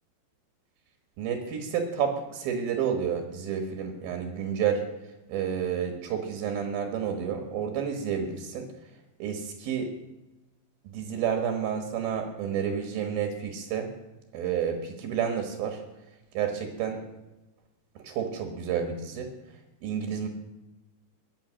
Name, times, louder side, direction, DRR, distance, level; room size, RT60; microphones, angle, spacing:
voice 1, 1.2-4.8 5.3-8.7 9.2-9.9 10.8-13.9 14.3-15.8 16.3-17.0 18.0-19.3 19.8-20.3, right 7 dB, 65° right, 4 dB, 3.0 m, -30 dB
22.5 x 8.5 x 6.3 m, 1.1 s
omnidirectional pair, 5.2 m